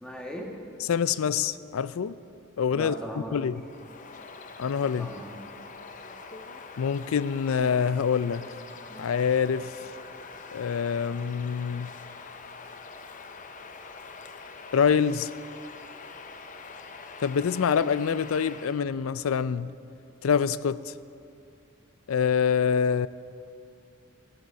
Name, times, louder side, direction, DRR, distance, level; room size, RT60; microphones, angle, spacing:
voice 1, 0.0-0.5 2.7-3.5 4.9-5.4, equal, 5° left, 1.4 m, -38 dB
voice 2, 0.9-2.2 2.6-2.9 3.3-3.6 4.6-5.1 6.8-8.5 9.0-9.7 10.5-11.9 14.7-15.3 17.2-19.7 20.2-20.9 22.1-23.1, left 7 dB, 85° left, 0.4 m, -25 dB
Bird vocalization bird call bird song, 3.6-18.8, left 4 dB, 35° left, 0.6 m, -44 dB
14.0 x 9.0 x 7.0 m
head